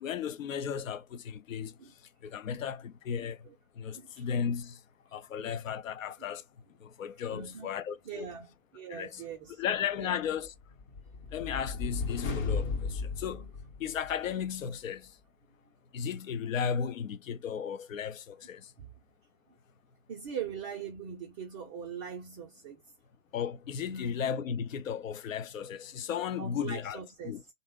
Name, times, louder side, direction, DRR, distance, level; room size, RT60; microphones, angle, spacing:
voice 1, 0.0-1.7 2.2-3.5 3.8-4.8 5.1-6.4 6.8-8.3 8.9-9.2 9.6-10.5 11.3-13.5 13.8-15.1 15.9-18.7 23.3-27.0 27.2-27.4, left 7 dB, 70° left, 0.6 m, -35 dB
voice 2, 3.2-3.5 3.9-4.3 5.4-5.6 7.3-7.8 8.0-9.6 10.0-10.1 18.8-18.9 20.1-22.8 23.9-24.1 26.4-27.5, right 7 dB, 25° right, 0.5 m, -42 dB
sound 1, 10.5-14.3, left 4 dB, 35° left, 0.9 m, -35 dB
2.6 x 2.0 x 3.5 m
hypercardioid pair, 120°, 41 cm